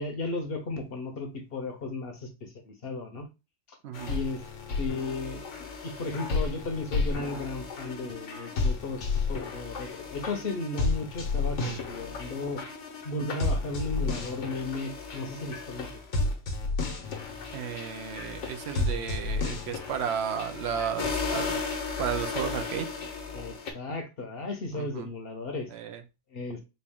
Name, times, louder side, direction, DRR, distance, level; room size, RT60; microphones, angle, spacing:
voice 1, 0.0-3.3 3.7-3.8 4.1-4.4 4.8-5.4 5.8-12.6 13.0-16.0 23.3-25.7 26.3-26.6, left 3 dB, 55° left, 5 dB, 1.0 m, -35 dB
sound 1, 3.9-23.7, left 3 dB, 80° left, 1.3 m, -32 dB
voice 2, 17.5-21.6 22.0-22.9 24.7-25.1 25.7-26.0, right 8 dB, 70° right, 8 dB, 0.8 m, -33 dB
4.2 x 2.3 x 3.5 m, 0.27 s
omnidirectional pair, 1.2 m